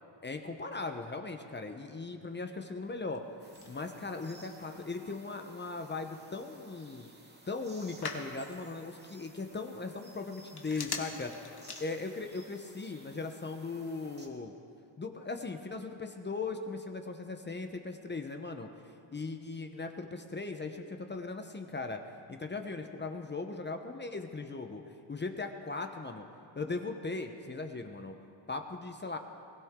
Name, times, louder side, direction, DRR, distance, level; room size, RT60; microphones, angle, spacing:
voice 1, 0.2-3.2 3.7-7.1 7.5-11.4 11.8-14.5 15.0-18.7 19.1-22.0 22.3-26.3 26.5-28.1 28.5-29.2, left 3 dB, 25° left, 5 dB, 0.9 m, -38 dB
Telephone, 2.8-12.4, left 5 dB, 55° left, 1.7 m, -47 dB
sound 1, 3.4-14.3, right 2 dB, 20° right, 2.2 m, -57 dB
21.5 x 16.0 x 3.7 m, 2.6 s
cardioid pair, 105°, 46 cm